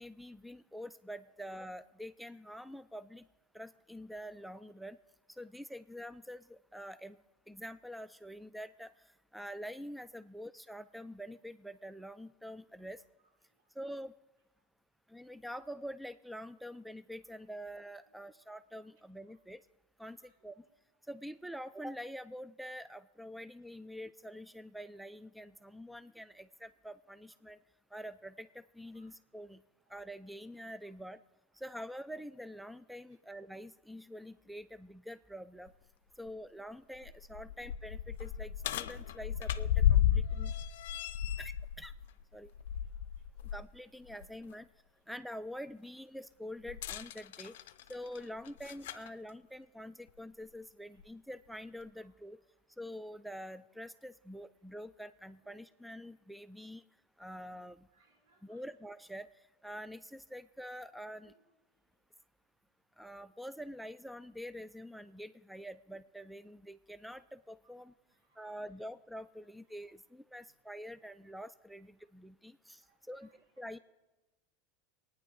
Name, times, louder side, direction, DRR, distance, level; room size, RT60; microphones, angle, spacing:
voice 1, 0.0-3.2 3.5-5.0 5.4-7.2 7.5-8.9 9.3-13.0 13.8-14.1 15.1-19.6 20.0-20.2 20.4-20.6 21.1-27.6 27.9-29.6 29.9-31.2 31.5-35.7 36.2-40.5 41.4-41.9 42.3-42.5 43.5-44.7 45.1-47.5 47.9-52.4 52.8-56.8 57.2-57.9 58.4-59.3 59.6-61.3 63.0-67.9 68.4-72.8 73.1-73.3 73.6-73.8, equal, ahead, 14 dB, 0.4 m, -46 dB
sound 1, 35.7-35.8 36.3-36.4 36.9-43.7 44.1-44.2 46.7-49.1 50.1-50.2 51.0-51.1, left 10 dB, 75° left, 0.5 m, -33 dB
voice 2, 40.1-40.4 40.9-41.4 43.2-43.4 47.5-47.7 50.9-51.0 52.0-52.1 55.4-55.5 57.9-58.7 61.2-61.4 61.8-61.9 67.6-67.7 68.0-68.6 72.0-72.1 72.8-73.4, right 4 dB, 75° right, 0 dB, 3.8 m, -72 dB
22.5 x 9.5 x 3.9 m, 1.1 s
hypercardioid pair, 95°, 0 cm